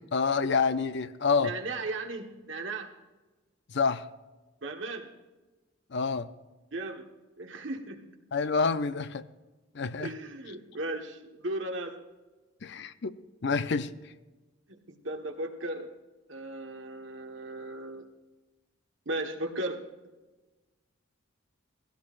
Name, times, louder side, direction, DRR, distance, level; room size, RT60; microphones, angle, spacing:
voice 1, 0.0-1.5 3.7-4.1 5.9-6.3 8.3-9.2 9.7-10.1 12.6-13.1 13.4-13.9, left 5 dB, 55° left, 13 dB, 0.6 m, -28 dB
voice 2, 1.4-2.9 4.6-5.1 6.7-7.0 7.4-8.0 10.0-12.0 14.9-15.9 16.3-18.0 19.0-19.8, right 2 dB, 65° right, 4 dB, 1.4 m, -36 dB
17.0 x 16.5 x 2.5 m, 1.2 s
head